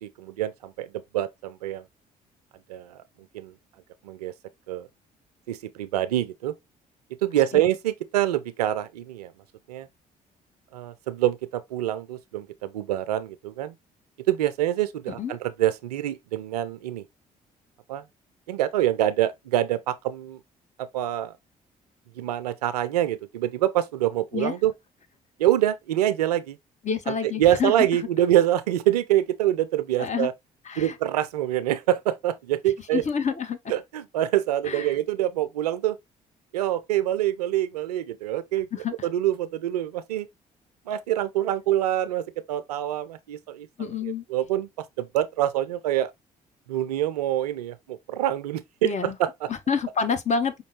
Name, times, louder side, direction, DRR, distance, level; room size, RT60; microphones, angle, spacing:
voice 1, 0.0-1.8 2.7-3.0 3.3-3.5 4.0-4.3 4.7-4.9 5.5-6.5 7.2-9.3 9.7-9.9 10.7-13.7 14.3-17.0 17.9-18.0 18.5-20.4 20.9-21.3 22.2-24.7 25.4-26.6 27.1-30.3 30.8-33.0 33.7-36.0 36.5-38.7 39.0-40.3 40.9-43.9 44.3-44.7 45.0-46.1 46.7-49.5, right 13 dB, 75° right, 0.4 m, -25 dB
voice 2, 26.8-27.7 30.0-30.3 30.7-30.9 32.9-33.7 34.7-34.8 38.7-38.9 43.8-44.2 48.8-49.1 49.7-50.6, left 6 dB, 35° left, 0.9 m, -27 dB
5.1 x 2.7 x 3.0 m
figure-of-eight pair, 45°, 20 cm